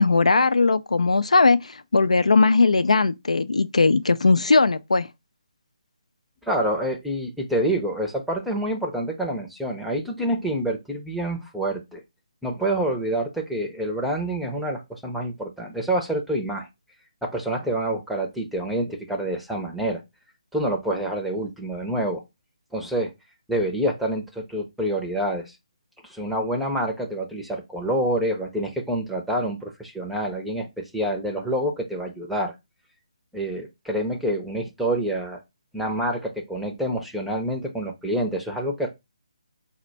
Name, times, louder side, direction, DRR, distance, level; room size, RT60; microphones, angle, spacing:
voice 1, 0.0-5.1, left 3 dB, 85° left, 0.4 m, -19 dB
voice 2, 6.5-12.0 12.4-16.7 17.2-20.0 20.5-22.2 22.7-23.1 23.5-25.5 26.0-32.5 33.3-35.4 35.7-38.9, right 1 dB, ahead, 0.6 m, -27 dB
4.2 x 2.1 x 3.9 m
figure-of-eight pair, 155°, 3 cm